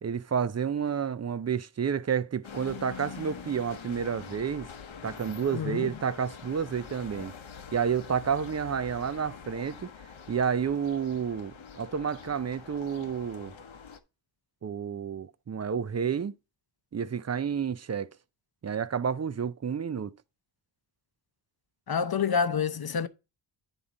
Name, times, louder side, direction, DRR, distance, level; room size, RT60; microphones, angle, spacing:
voice 1, 0.0-4.7 5.0-7.3 7.7-9.9 10.3-13.5 14.6-16.3 16.9-18.1 18.6-20.1, right 7 dB, 35° right, 0.4 m, -30 dB
sound 1, 2.4-14.0, left 6 dB, 80° left, 1.0 m, -45 dB
voice 2, 5.5-5.9 21.9-23.1, left 6 dB, 50° left, 0.7 m, -28 dB
10.0 x 3.7 x 4.0 m
wide cardioid pair, 95°, 46 cm